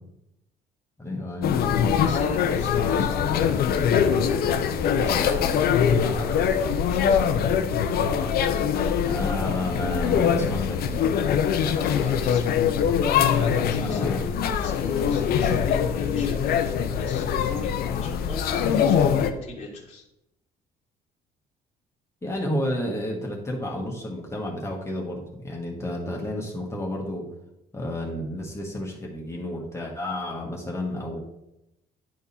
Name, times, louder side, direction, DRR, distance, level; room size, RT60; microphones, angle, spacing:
voice 1, 1.0-1.5 9.1-11.2 13.8-14.3 22.2-27.2 27.7-31.2, left 1 dB, 15° left, -2 dB, 1.4 m, -31 dB
sound 1, 1.4-19.3, left 7 dB, 65° left, 0.6 m, -23 dB
voice 2, 1.9-7.5 11.7-12.6 13.1-20.0, left 3 dB, 35° left, -4 dB, 1.4 m, -38 dB
10.5 x 3.6 x 4.2 m, 0.87 s
cardioid pair, 110°, 17 cm